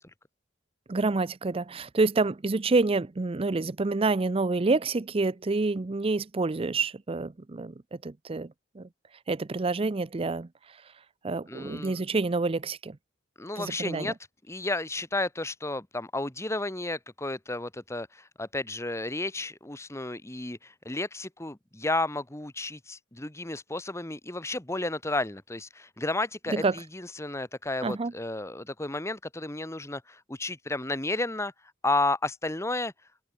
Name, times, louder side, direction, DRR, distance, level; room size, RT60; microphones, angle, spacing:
voice 1, 0.9-8.9 9.3-10.5 11.2-13.0 13.6-14.1 26.5-26.7 27.8-28.1, right 3 dB, 30° right, 0.5 m, -28 dB
voice 2, 11.5-12.0 13.4-14.1 14.5-31.5 31.8-32.9, left 2 dB, 15° left, 1.3 m, -32 dB
head